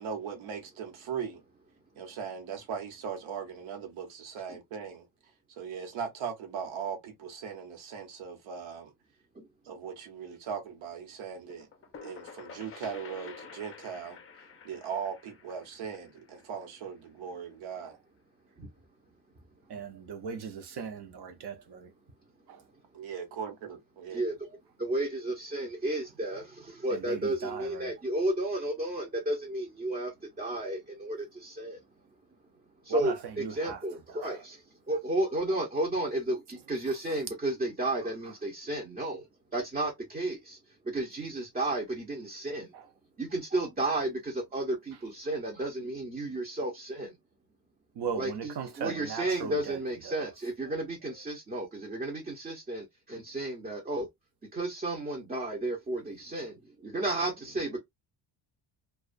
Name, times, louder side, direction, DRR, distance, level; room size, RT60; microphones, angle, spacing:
voice 1, 0.0-1.4 2.0-5.1 5.6-8.9 9.6-11.7 12.0-14.2 14.6-18.0 22.9-24.2, right 7 dB, 75° right, 1.0 m, -39 dB
sound 1, 11.5-17.1, left 6 dB, 30° left, 0.5 m, -49 dB
voice 2, 19.7-21.9 22.5-22.6 26.9-27.9 32.9-33.8 34.1-34.4 42.7-42.8 48.0-50.3, right 6 dB, 55° right, 0.7 m, -38 dB
voice 3, 24.1-31.8 32.8-39.3 39.5-40.6 40.8-42.7 43.2-47.1 48.2-54.1 54.5-57.8, right 1 dB, 20° right, 0.6 m, -33 dB
2.3 x 2.2 x 2.4 m
cardioid pair, 120°, 48 cm